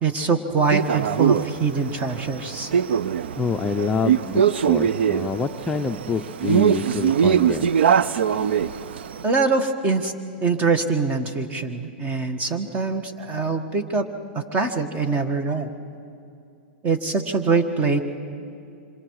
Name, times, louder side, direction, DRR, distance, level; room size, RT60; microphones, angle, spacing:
voice 1, 0.0-2.7 9.2-10.1 10.4-14.1 14.3-15.7 16.8-18.0, right 4 dB, 25° right, 8 dB, 1.7 m, -23 dB
Male speech man speaking, 0.7-9.2, right 8 dB, 80° right, 0.6 m, -22 dB
voice 2, 3.4-7.7, left 4 dB, 15° left, 4 dB, 0.6 m, -27 dB
26.5 x 25.0 x 4.9 m, 2.6 s
hypercardioid pair, 130°, 6 cm